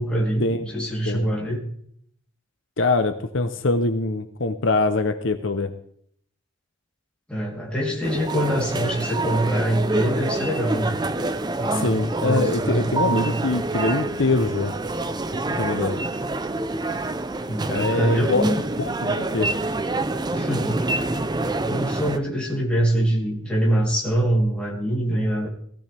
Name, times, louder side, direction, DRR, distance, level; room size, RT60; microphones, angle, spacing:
voice 1, 0.0-1.6 7.3-10.9 11.2-11.3 11.6-13.3 15.3-15.4 17.5-18.6 20.3-20.8 21.6-25.5, right 1 dB, 5° left, -4 dB, 3.3 m, -24 dB
voice 2, 2.8-5.7 11.7-14.8 15.6-16.0 17.7-18.5 18.8-19.6, left 3 dB, 65° left, 8 dB, 0.8 m, -23 dB
sound 1, 8.0-22.2, right 2 dB, 20° right, 0.6 m, -27 dB
17.0 x 15.5 x 3.4 m, 0.65 s
head